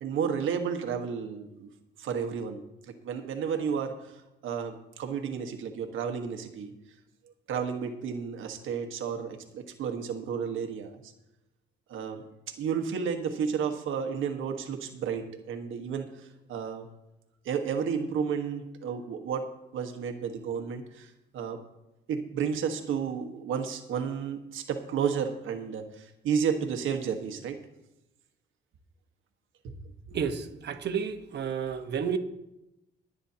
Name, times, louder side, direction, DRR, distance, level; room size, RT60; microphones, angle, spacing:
voice 1, 0.0-1.7 2.0-6.7 7.5-11.1 11.9-12.2 12.6-16.9 17.4-21.6 22.1-27.6 29.6-29.7, right 7 dB, 80° right, 5 dB, 1.5 m, -32 dB
voice 2, 30.1-32.2, right 7 dB, 60° right, 6 dB, 1.2 m, -31 dB
22.0 x 8.9 x 2.9 m, 0.89 s
cardioid pair, 90°, 20 cm